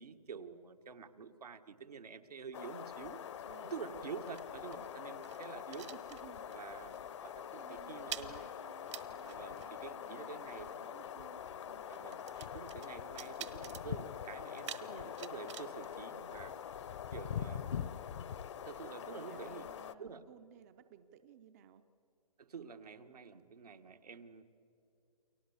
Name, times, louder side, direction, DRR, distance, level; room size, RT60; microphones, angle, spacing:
voice 1, 0.0-3.2 3.6-5.9 6.5-8.4 9.2-10.6 11.9-16.8 17.1-18.0 18.6-19.7 20.0-20.2 22.4-24.4, right 6 dB, 75° right, 6 dB, 1.7 m, -48 dB
sound 1, 2.5-19.9, left 9 dB, 50° left, 0.9 m, -44 dB
sound 2, 3.3-6.7 6.9-7.2 7.5-16.9, right 10 dB, 50° right, 1.2 m, -51 dB
voice 2, 3.4-4.1 5.9-6.6 7.0-7.3 7.6-11.8 18.8-21.8, right 9 dB, 25° right, 10 dB, 0.6 m, -58 dB
29.5 x 22.5 x 7.2 m, 2.6 s
hypercardioid pair, 155°, 20 cm